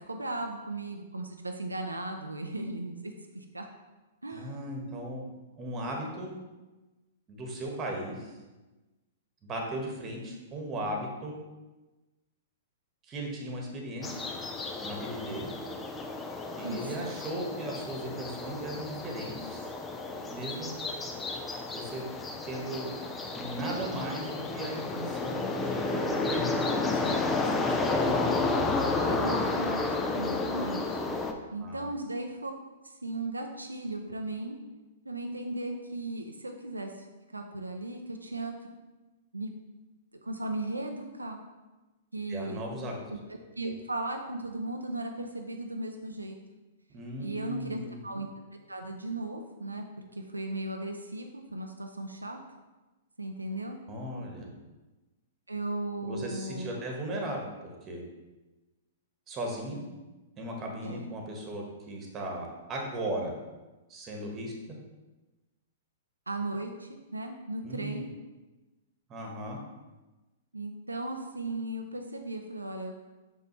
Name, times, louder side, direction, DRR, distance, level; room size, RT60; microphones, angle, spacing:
voice 1, 0.0-3.7 4.2-4.5 16.6-17.1 29.1-31.0 31.5-32.5 32.8-34.6 35.0-37.1 37.3-38.5 39.3-39.5 40.2-41.4 42.1-42.6 43.3-46.4 47.2-48.3 48.7-49.8 50.1-52.4 53.2-53.8 55.5-56.8 60.8-61.1 66.3-68.1 70.5-72.9, right 2 dB, 90° right, 4 dB, 0.5 m, -36 dB
voice 2, 4.3-5.2 5.6-6.3 7.3-8.3 9.4-11.4 13.0-14.2 14.8-15.5 16.6-19.7 20.3-20.7 21.7-22.1 22.4-22.9 23.3-28.3 31.6-31.9 42.3-43.0 46.9-48.0 53.9-54.5 56.0-58.0 59.3-59.8 60.4-63.3 63.9-64.5 67.6-68.1 69.1-69.6, right 1 dB, 25° right, 0 dB, 1.4 m, -37 dB
sound 1, 14.0-31.3, left 3 dB, 15° left, 0.6 m, -32 dB
5.7 x 5.3 x 3.1 m, 1.1 s
figure-of-eight pair, 110°, 0 cm